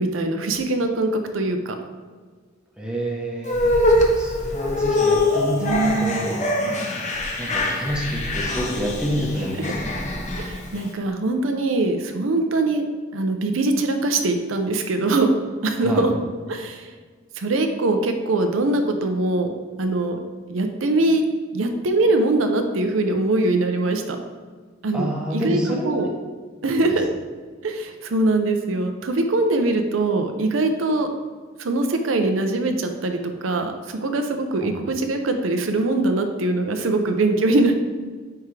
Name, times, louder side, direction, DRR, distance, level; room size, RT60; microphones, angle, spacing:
voice 1, 0.0-1.8 5.6-6.3 10.4-12.8 13.1-15.3 15.6-16.1 16.5-16.9 17.4-19.5 19.8-20.2 20.5-21.2 21.5-24.2 24.8-26.1 26.6-27.1 27.6-31.1 31.6-37.7, right 2 dB, 85° right, 5 dB, 0.6 m, -22 dB
voice 2, 2.8-6.5 7.4-10.0 15.8-16.1 24.9-26.1 26.8-27.0 34.6-34.8, equal, 5° right, -3 dB, 1.0 m, -28 dB
sound 1, 3.4-10.9, left 1 dB, 35° left, 0.8 m, -23 dB
9.3 x 3.6 x 3.2 m, 1.5 s
head